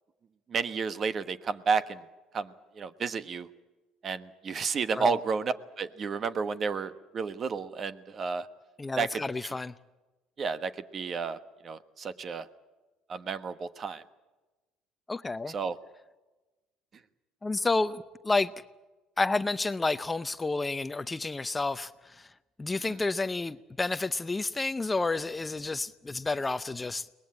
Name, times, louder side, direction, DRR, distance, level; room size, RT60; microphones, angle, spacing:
voice 1, 0.5-2.0 2.3-3.5 4.0-8.5 9.0-9.2 10.4-11.4 11.6-12.5 13.1-14.0 15.5-15.8 22.9-23.0, right 5 dB, 40° right, 12 dB, 1.3 m, -31 dB
voice 2, 8.8-9.7 15.1-15.5 17.4-18.5 19.2-22.3 22.6-27.1, left 3 dB, 20° left, 14 dB, 0.7 m, -30 dB
23.0 x 19.5 x 8.6 m, 1.1 s
supercardioid pair, 90°, 0 cm